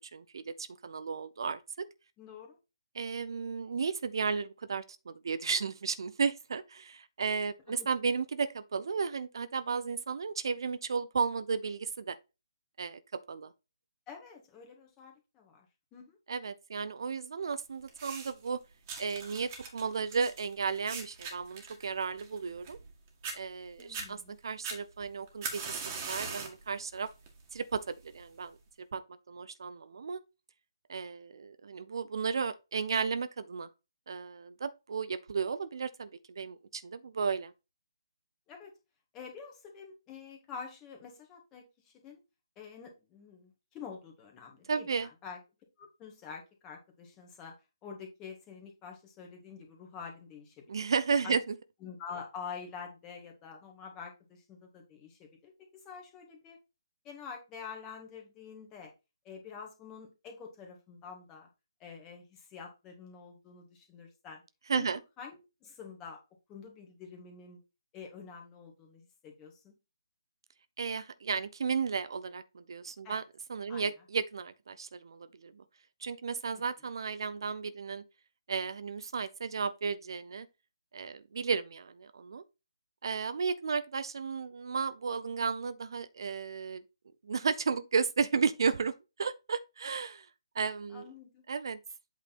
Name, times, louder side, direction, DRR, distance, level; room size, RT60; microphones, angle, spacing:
voice 1, 0.0-1.9 2.9-12.2 12.8-13.0 13.3-13.5 16.3-18.6 19.0-22.8 23.3-24.2 24.4-27.1 27.5-28.6 28.9-29.0 29.3-30.2 30.9-33.7 34.1-37.5 44.7-45.1 50.7-51.6 64.7-65.0 70.8-73.2 73.5-75.6 76.0-78.0 78.5-80.5 80.9-82.4 83.0-86.8 87.2-88.9 89.2-90.3 90.5-91.1 91.5-91.8, right 5 dB, 60° right, 0.6 m, -34 dB
voice 2, 2.2-2.6 7.7-7.9 14.1-15.7 15.9-16.2 23.8-24.3 38.5-38.7 39.1-42.2 42.6-45.4 45.8-47.5 47.8-50.9 51.2-51.3 51.8-56.6 57.0-58.9 59.2-61.5 61.8-64.4 64.7-64.9 65.2-65.4 65.6-66.2 66.5-67.6 67.9-69.7 73.0-73.2 73.7-73.9 76.5-76.7 90.9-91.4, left 6 dB, 20° left, 1.9 m, -47 dB
sound 1, 17.9-18.5 18.9-22.9 23.2-23.4 23.8-24.1 24.6-26.6 27.1-27.4 28.2-28.3, right 5 dB, 30° right, 1.9 m, -40 dB
8.2 x 4.0 x 4.1 m
figure-of-eight pair, 145°, 3 cm